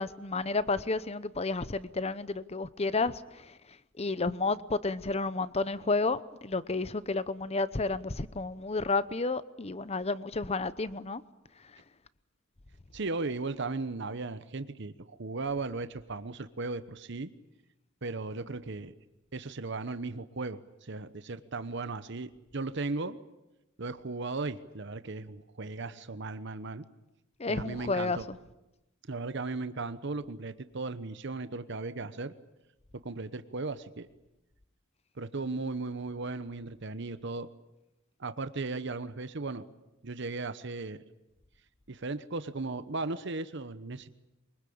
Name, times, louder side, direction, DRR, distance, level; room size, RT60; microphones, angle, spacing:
voice 1, 0.0-3.2 4.0-11.2 27.4-28.4, left 3 dB, 30° left, 16 dB, 0.8 m, -31 dB
voice 2, 12.9-17.3 18.0-18.9 19.3-23.2 23.8-26.8 27.5-28.3 29.1-32.3 33.0-34.1 35.2-37.5 38.2-39.6 40.0-41.0 41.9-44.1, right 3 dB, 65° right, 12 dB, 1.0 m, -36 dB
24.0 x 22.0 x 8.7 m, 0.95 s
head